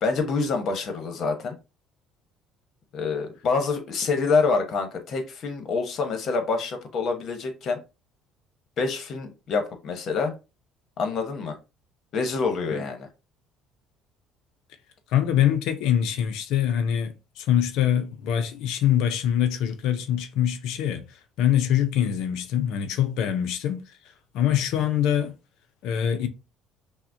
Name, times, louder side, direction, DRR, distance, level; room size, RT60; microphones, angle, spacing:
voice 1, 0.0-1.6 2.9-7.8 8.8-10.3 11.0-11.6 12.1-13.1, left 4 dB, 55° left, 1.0 m, -26 dB
voice 2, 15.1-23.8 24.3-25.3 25.8-26.3, left 10 dB, 75° left, 0.5 m, -24 dB
5.7 x 2.1 x 2.6 m
supercardioid pair, 85°, 0 cm